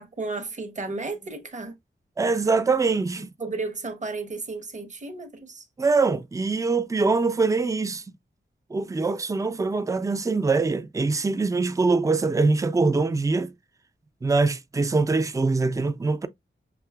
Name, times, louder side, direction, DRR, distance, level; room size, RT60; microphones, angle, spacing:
voice 1, 0.0-1.8 3.1-5.7, right 3 dB, 35° right, 0.9 m, -33 dB
voice 2, 2.2-3.3 5.8-8.0 8.7-13.5 14.2-16.3, right 3 dB, 15° right, 0.4 m, -23 dB
5.9 x 2.9 x 2.3 m
wide cardioid pair, 105°, 21 cm